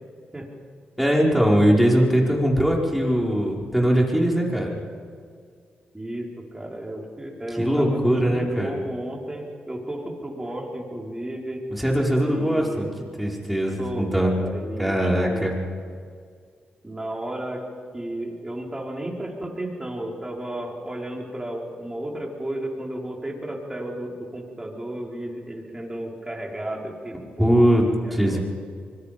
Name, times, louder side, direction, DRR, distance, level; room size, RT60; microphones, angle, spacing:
voice 1, 1.0-4.8 7.5-8.8 11.8-12.9 13.2-14.3 14.8-15.6 27.4-27.8 28.1-28.4, equal, ahead, -2 dB, 5.4 m, -21 dB
voice 2, 5.9-11.6 12.2-12.9 13.8-15.5 16.8-17.6 17.9-27.6 28.0-28.4, right 1 dB, 15° right, -1 dB, 5.0 m, -33 dB
25.0 x 22.0 x 5.4 m, 2.1 s
cardioid pair, 65°, 4 cm